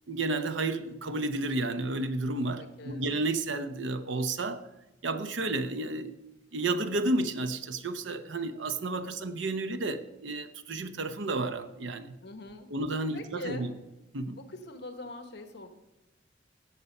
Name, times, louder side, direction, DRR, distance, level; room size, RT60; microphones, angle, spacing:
voice 1, 0.1-4.7 5.0-6.2 6.5-12.2 12.7-13.7 14.1-14.4, right 2 dB, 75° right, 10 dB, 0.8 m, -31 dB
voice 2, 2.6-3.1 12.2-12.7 13.1-13.7 14.3-15.7, left 2 dB, 60° left, 7 dB, 1.2 m, -42 dB
16.5 x 6.9 x 5.4 m, 0.99 s
head